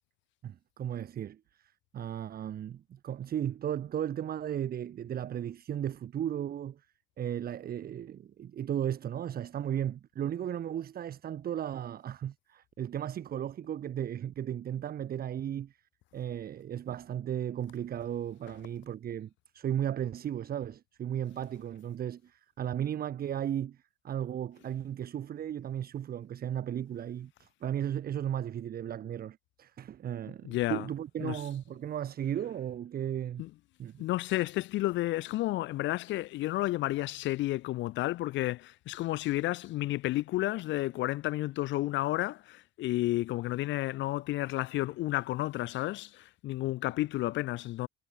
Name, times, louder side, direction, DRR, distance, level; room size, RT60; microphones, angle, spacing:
voice 1, 0.4-6.8 7.2-15.8 16.1-23.8 24.0-33.4 33.8-34.1, right 10 dB, 25° right, 0.6 m, -35 dB
voice 2, 30.4-30.8 31.2-31.4 33.4-33.5 34.0-47.9, left 17 dB, 30° left, 0.4 m, -31 dB
figure-of-eight pair, 55°, 39 cm